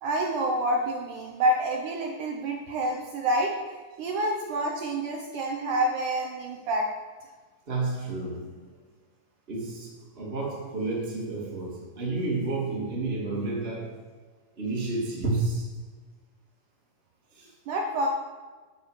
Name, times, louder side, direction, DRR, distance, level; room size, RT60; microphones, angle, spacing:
voice 1, 0.0-6.9 17.7-18.1, right 1 dB, 70° right, 0 dB, 2.2 m, -28 dB
voice 2, 7.7-8.7 9.5-14.2 14.6-15.7 17.3-17.5, right 3 dB, 20° right, -3 dB, 2.1 m, -31 dB
9.6 x 6.8 x 6.5 m, 1.3 s
omnidirectional pair, 4.1 m